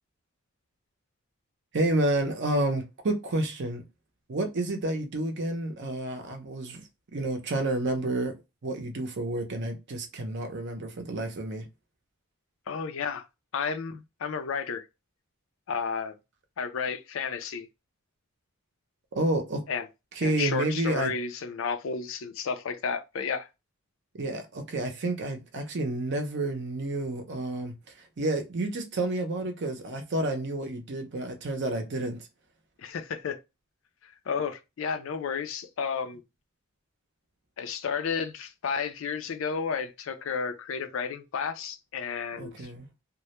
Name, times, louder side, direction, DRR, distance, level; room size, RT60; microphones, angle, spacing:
voice 1, 1.7-3.8 4.3-6.8 7.1-8.3 8.6-11.7 19.1-19.6 20.2-21.1 24.1-32.3 42.4-42.9, right 2 dB, 55° right, 0.6 m, -30 dB
voice 2, 12.7-13.2 13.5-14.8 15.7-16.1 16.6-17.7 19.7-19.9 20.2-23.5 32.8-33.4 34.0-36.2 37.6-42.7, left 6 dB, 60° left, 0.4 m, -32 dB
2.2 x 2.1 x 2.8 m
head